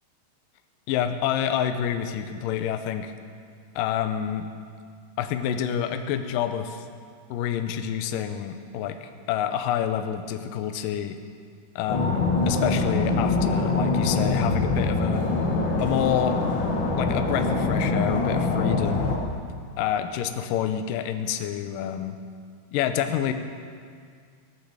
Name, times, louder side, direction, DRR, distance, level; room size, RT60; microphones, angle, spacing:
voice 1, 0.9-3.1 3.8-4.5 5.2-6.8 7.3-11.2 11.8-15.2 15.8-16.4 17.0-19.1 19.8-22.2 22.7-23.3, left 9 dB, 75° left, 7 dB, 2.2 m, -28 dB
sound 1, 11.9-19.2, left 3 dB, 45° left, 1.6 m, -24 dB
17.0 x 9.9 x 7.1 m, 2.1 s
omnidirectional pair, 4.4 m